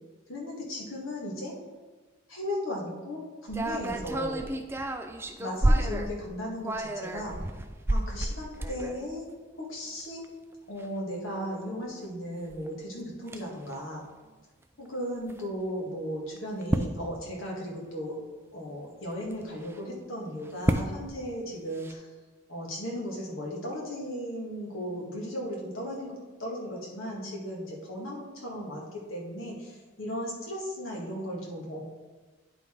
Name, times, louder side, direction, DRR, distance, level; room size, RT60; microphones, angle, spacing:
voice 1, 0.3-1.5 2.3-4.4 5.4-7.4 7.9-9.3 9.6-10.3 10.7-14.0 14.8-18.2 18.5-22.1 22.5-26.1 26.4-31.8, equal, 75° left, -2 dB, 1.9 m, -36 dB
sound 1, 3.5-6.1 6.5-9.1 9.9-10.0 10.2-10.3 10.8-10.9 12.5-12.7 13.3-13.4 13.7-13.8 15.3-15.4 16.4-17.0 19.3-19.8 20.4-21.1 21.8-21.9, right 1 dB, 10° right, 0.3 m, -29 dB
9.8 x 4.0 x 4.6 m, 1.3 s
head